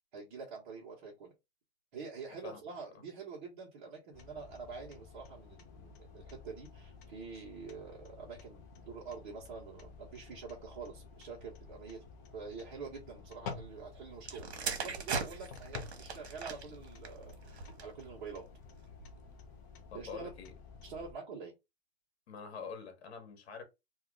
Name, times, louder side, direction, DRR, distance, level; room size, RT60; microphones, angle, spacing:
voice 1, 0.1-1.3 1.9-12.0 12.3-18.4 19.9-20.3 20.8-21.5, right 5 dB, 45° right, 1.2 m, -46 dB
sound 1, 4.1-21.1, left 5 dB, 20° left, 0.3 m, -51 dB
sound 2, 14.2-18.0 18.8-19.1, right 5 dB, 85° right, 1.1 m, -40 dB
voice 2, 19.9-20.5 22.3-23.6, left 5 dB, 70° left, 1.2 m, -45 dB
2.8 x 2.4 x 3.6 m
hypercardioid pair, 155°, 32 cm